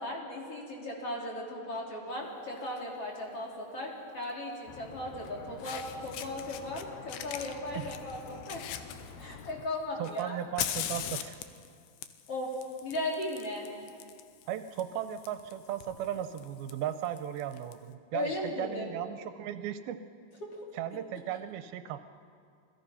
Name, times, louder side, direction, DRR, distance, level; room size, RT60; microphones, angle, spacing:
voice 1, 0.0-8.6 9.2-10.4 12.3-12.5 12.8-13.7 18.1-18.9 20.4-20.6, left 1 dB, 40° left, -2 dB, 3.7 m, -37 dB
Fire, 2.6-2.8 4.2-4.3 5.3-5.4 5.6-6.8 7.1-9.5 10.0-17.7, left 11 dB, 90° left, 2.9 m, -41 dB
sound 1, 4.7-9.7, left 5 dB, 65° left, 2.0 m, -48 dB
voice 2, 10.0-11.4 14.5-20.0 20.7-22.0, right 10 dB, 80° right, 10 dB, 2.5 m, -36 dB
27.5 x 20.0 x 5.7 m, 2.3 s
omnidirectional pair, 4.4 m